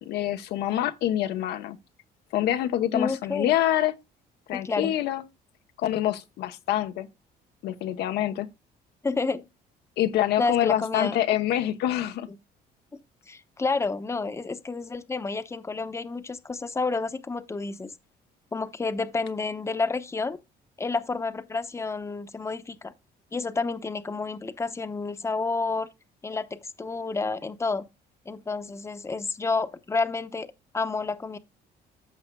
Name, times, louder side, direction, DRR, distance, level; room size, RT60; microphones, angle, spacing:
voice 1, 0.0-1.8 2.3-3.9 4.5-5.2 5.8-7.1 7.6-8.5 10.0-12.3, left 12 dB, 80° left, 1.0 m, -26 dB
voice 2, 2.9-3.5 4.5-4.9 9.0-9.4 10.4-11.2 12.9-13.0 13.3-17.9 18.5-20.4 20.8-22.9 23.3-25.9 26.2-27.9 28.3-30.5 30.7-31.4, left 4 dB, 15° left, 0.9 m, -30 dB
14.0 x 5.7 x 2.2 m
cardioid pair, 110°, 17 cm